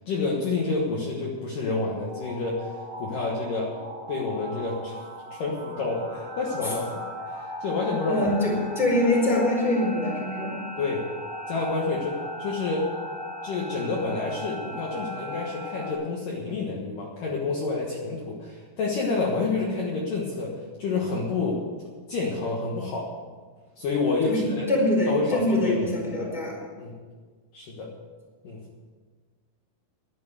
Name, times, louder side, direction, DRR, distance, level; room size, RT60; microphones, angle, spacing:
voice 1, 0.1-3.7 4.1-6.9 7.3-8.3 10.8-11.1 11.5-12.9 13.4-20.5 20.8-21.6 22.1-23.1 23.8-24.7 25.1-26.4 26.8-26.9 27.5-27.9 28.4-28.6, left 3 dB, 60° left, -2 dB, 2.6 m, -29 dB
sound 1, 1.6-15.9, equal, 20° right, 1.3 m, -38 dB
voice 2, 8.1-10.6 24.2-26.6, left 1 dB, ahead, -3 dB, 3.7 m, -24 dB
11.5 x 10.5 x 8.0 m, 1.5 s
omnidirectional pair, 5.1 m